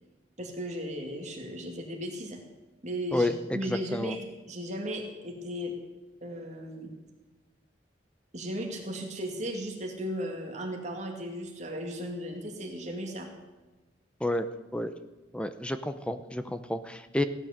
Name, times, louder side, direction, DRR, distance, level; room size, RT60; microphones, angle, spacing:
voice 1, 0.4-2.4 2.8-5.7 6.2-6.9 8.3-13.3, equal, 40° right, 1 dB, 2.2 m, -36 dB
voice 2, 3.1-4.2 14.2-14.9 15.3-17.2, left 1 dB, 5° left, 10 dB, 0.7 m, -31 dB
16.0 x 11.0 x 6.6 m, 1.2 s
head